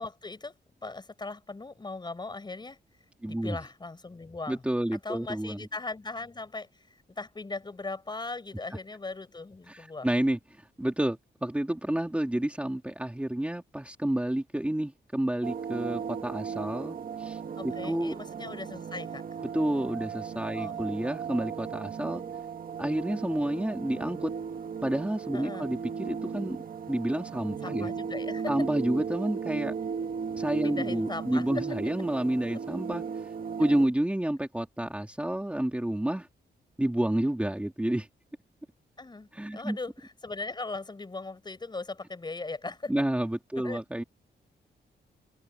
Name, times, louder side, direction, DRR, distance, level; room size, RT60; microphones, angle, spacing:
voice 1, 0.0-2.8 3.2-4.6 4.9-10.1 17.6-19.2 20.6-20.8 25.3-25.7 27.6-28.5 30.6-31.8 39.0-43.0 43.6-43.8, left 3 dB, 25° left, 4.4 m, -39 dB
voice 2, 3.2-3.6 4.5-5.7 9.7-18.1 19.5-22.2 22.8-24.3 24.8-26.6 26.9-27.9 28.5-29.7 30.4-33.3 33.6-36.3 36.8-38.1 39.3-39.8 42.9-44.0, right 1 dB, 5° right, 2.6 m, -30 dB
sound 1, 15.4-33.9, right 6 dB, 50° right, 1.5 m, -36 dB
wide cardioid pair, 125°, 18 cm